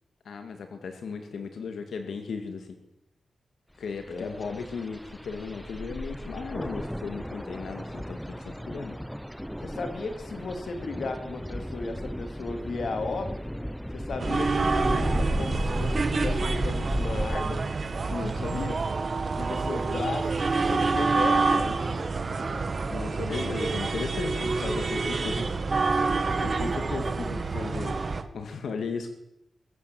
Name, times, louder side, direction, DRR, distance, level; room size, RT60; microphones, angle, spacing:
voice 1, 0.2-2.8 3.8-9.0 18.1-18.8 22.9-25.6 28.3-29.1, left 5 dB, 85° left, 6 dB, 2.2 m, -36 dB
sound 1, 4.0-17.4, equal, ahead, 0.6 m, -34 dB
voice 2, 4.1-4.7 9.6-13.4 13.9-17.7 18.4-18.6 19.4-21.8 23.3-23.6 24.2-24.5 25.0-25.3 26.4-28.0, left 3 dB, 55° left, 6 dB, 3.0 m, -35 dB
sound 2, 14.2-28.2, right 4 dB, 35° right, 1.7 m, -27 dB
24.0 x 14.0 x 7.8 m, 0.85 s
wide cardioid pair, 175°, 0 cm